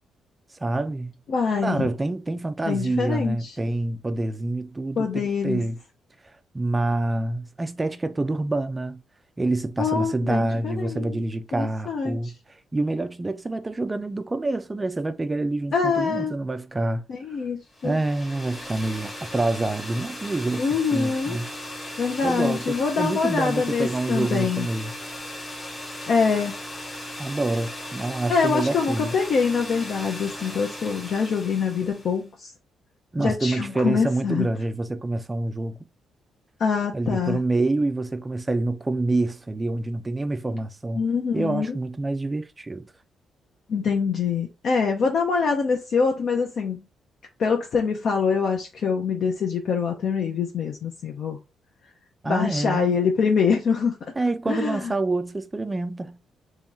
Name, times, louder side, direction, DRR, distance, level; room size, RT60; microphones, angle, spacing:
voice 1, 0.6-1.1 1.6-5.8 6.5-9.0 9.4-12.3 12.7-17.1 17.8-21.5 22.2-24.9 27.2-29.1 33.1-35.8 36.9-41.0 41.3-42.9 52.2-53.0 54.2-56.2, right 2 dB, 15° right, 0.4 m, -27 dB
voice 2, 1.3-1.9 2.6-3.6 5.0-5.7 9.8-11.2 11.5-12.3 15.7-16.3 17.1-18.0 20.6-21.4 22.0-24.7 26.1-26.5 28.3-32.5 33.2-34.5 36.6-37.4 40.9-41.8 43.7-46.8 47.4-51.4 52.2-54.0 54.5-54.9, left 5 dB, 55° left, 0.6 m, -24 dB
sound 1, 17.7-32.2, left 1 dB, 15° left, 1.0 m, -37 dB
3.0 x 2.9 x 3.5 m
cardioid pair, 155°, 0 cm